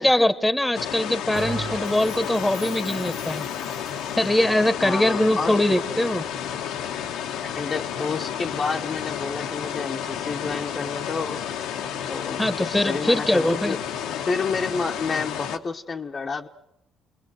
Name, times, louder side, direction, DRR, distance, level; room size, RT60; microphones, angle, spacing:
voice 1, 0.0-3.4 4.2-6.3 12.4-13.8, left 1 dB, 10° left, 12 dB, 1.6 m, -22 dB
sound 1, 0.7-15.6, left 9 dB, 75° left, 1.3 m, -31 dB
Bell, 1.3-4.1, right 4 dB, 40° right, 1.3 m, -37 dB
voice 2, 4.8-5.6 7.4-11.4 12.1-16.5, left 4 dB, 40° left, 3 dB, 1.2 m, -30 dB
28.5 x 21.0 x 6.4 m, 0.83 s
hypercardioid pair, 55°, 0 cm